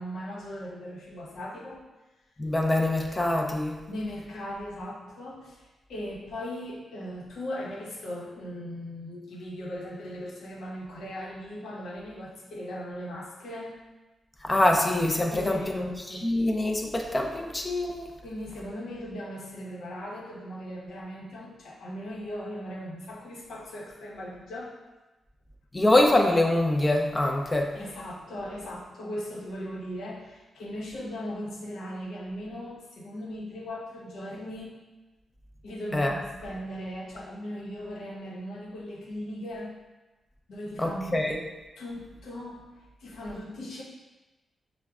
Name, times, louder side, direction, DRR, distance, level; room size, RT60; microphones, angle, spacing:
voice 1, 0.0-1.9 3.9-13.8 15.3-16.4 18.2-24.8 27.4-34.8 35.6-39.8 40.5-41.2 41.8-43.8, equal, 85° left, -3 dB, 0.8 m, -38 dB
voice 2, 2.4-3.8 14.4-15.9 16.2-18.1 25.7-27.7 35.9-36.2 40.8-41.4, left 1 dB, 20° left, 1 dB, 0.4 m, -24 dB
5.8 x 2.1 x 2.3 m, 1.1 s
cardioid pair, 115°, 0 cm